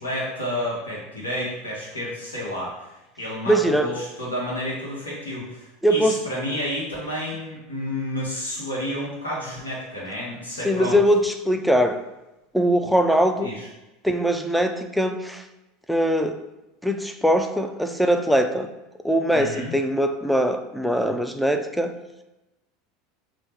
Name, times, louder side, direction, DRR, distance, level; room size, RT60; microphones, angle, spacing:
voice 1, 0.0-11.0 13.4-13.7 19.3-19.8, left 1 dB, 80° left, -4 dB, 0.9 m, -30 dB
voice 2, 3.5-3.9 5.8-6.2 10.6-12.0 12.5-13.5 14.0-15.4 15.9-16.4 16.8-18.7 19.0-21.9, equal, ahead, 6 dB, 0.3 m, -21 dB
4.0 x 2.0 x 3.3 m, 0.98 s
figure-of-eight pair, 75°, 0 cm